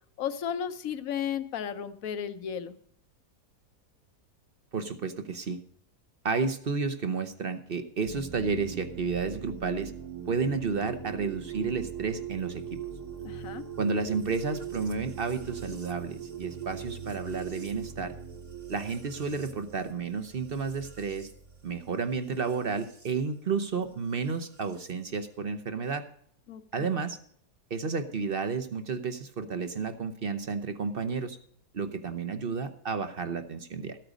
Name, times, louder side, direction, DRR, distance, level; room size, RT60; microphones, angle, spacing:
voice 1, 0.2-2.8 13.2-13.7 26.5-27.0, left 8 dB, 60° left, 12 dB, 1.1 m, -34 dB
voice 2, 4.7-5.6 6.2-9.9 10.3-12.6 13.8-18.1 18.7-21.3 21.6-26.0 26.7-27.2 27.7-31.4 31.7-34.0, right 5 dB, 45° right, 10 dB, 0.8 m, -31 dB
sound 1, 8.0-23.1 24.3-24.9, right 8 dB, 25° right, 1.1 m, -41 dB
13.5 x 9.0 x 5.1 m, 0.62 s
omnidirectional pair, 1.8 m